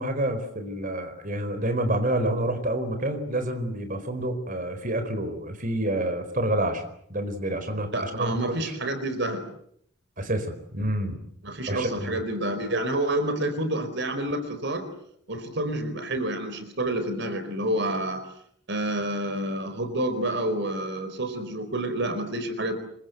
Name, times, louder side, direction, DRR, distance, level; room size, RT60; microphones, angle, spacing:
voice 1, 0.0-6.8 7.1-8.7 10.2-11.2 11.7-12.1, right 1 dB, 40° right, 8 dB, 4.5 m, -28 dB
voice 2, 7.9-9.4 11.4-14.9 15.3-18.2 18.7-22.7, right 1 dB, 55° right, 10 dB, 4.4 m, -28 dB
27.5 x 24.5 x 8.1 m, 0.70 s
head